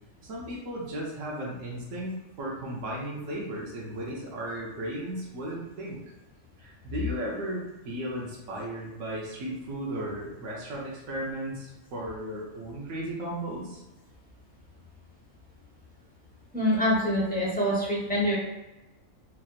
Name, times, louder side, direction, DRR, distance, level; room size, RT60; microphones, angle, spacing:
voice 1, 0.2-6.0 6.6-13.8, right 1 dB, 75° right, -4 dB, 1.2 m, -35 dB
voice 2, 16.5-18.4, equal, 5° left, -7 dB, 1.1 m, -25 dB
4.6 x 2.9 x 2.4 m, 1.1 s
omnidirectional pair, 1.4 m